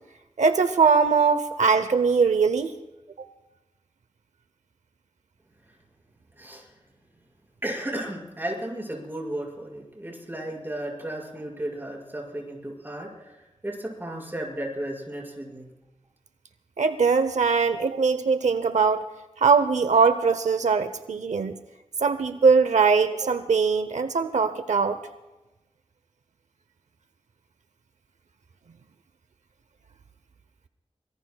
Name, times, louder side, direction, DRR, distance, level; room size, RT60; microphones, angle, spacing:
voice 1, 0.4-2.7 3.2-3.3 16.8-19.0 19.4-21.6 22.0-25.0, right 5 dB, 90° right, 11 dB, 0.7 m, -21 dB
voice 2, 6.4-6.7 7.6-15.7, right 1 dB, 15° right, -2 dB, 5.8 m, -34 dB
24.5 x 22.5 x 2.3 m, 1.0 s
wide cardioid pair, 90°, 12 cm